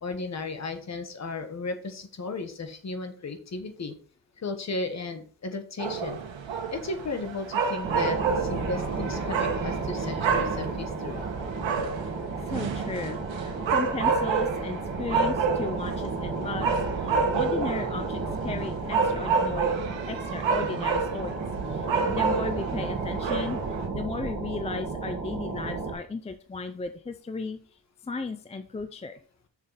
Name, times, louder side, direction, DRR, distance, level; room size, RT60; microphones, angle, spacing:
voice 1, 0.0-4.0 4.4-6.2 6.5-11.3, left 3 dB, 35° left, 7 dB, 1.2 m, -35 dB
sound 1, 5.8-23.9, right 5 dB, 85° right, 1.5 m, -29 dB
sound 2, 7.8-25.9, right 4 dB, 35° right, 1.7 m, -33 dB
voice 2, 12.5-16.7 17.3-19.7 20.1-21.4 22.1-23.6 23.9-27.6 28.1-29.1, left 4 dB, 15° left, 8 dB, 0.3 m, -35 dB
6.6 x 6.6 x 4.0 m, 0.44 s
wide cardioid pair, 155°, 45 cm